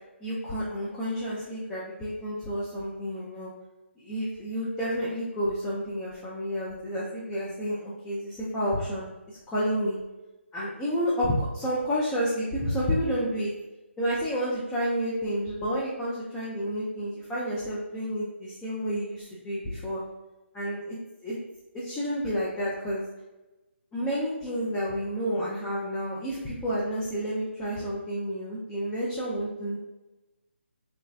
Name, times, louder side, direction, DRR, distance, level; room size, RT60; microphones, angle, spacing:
voice 1, 0.2-3.5 4.0-10.0 10.5-13.5 14.0-20.0 20.5-21.4 21.7-23.0 23.9-29.8, equal, 10° left, -8 dB, 0.4 m, -30 dB
3.3 x 3.0 x 2.4 m, 1.1 s
figure-of-eight pair, 150°, 7 cm